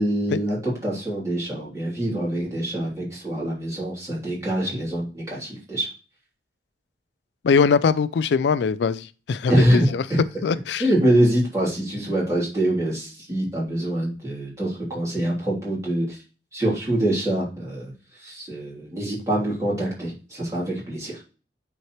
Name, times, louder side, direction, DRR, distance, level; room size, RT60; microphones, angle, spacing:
voice 1, 0.0-5.9 9.5-9.8 10.8-16.2 16.5-17.9 18.2-21.2, right 1 dB, 15° right, 3.3 m, -24 dB
voice 2, 7.4-10.1 10.4-10.9, left 5 dB, 75° left, 0.4 m, -22 dB
9.3 x 4.5 x 3.2 m
head